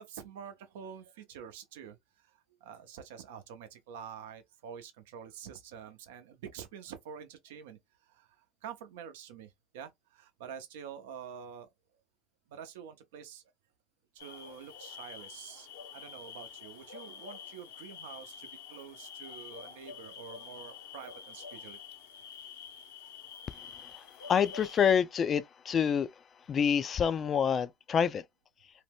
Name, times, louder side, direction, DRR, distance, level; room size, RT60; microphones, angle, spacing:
voice 1, 0.0-2.3 2.6-7.8 8.1-8.3 8.6-11.7 12.5-13.4 14.1-21.8, right 7 dB, 75° right, 0.7 m, -47 dB
sound 1, 14.2-24.9, left 7 dB, 80° left, 0.9 m, -48 dB
voice 2, 24.3-26.1 26.5-28.2, left 7 dB, 35° left, 0.4 m, -27 dB
2.7 x 2.1 x 3.4 m
hypercardioid pair, 85°, 0 cm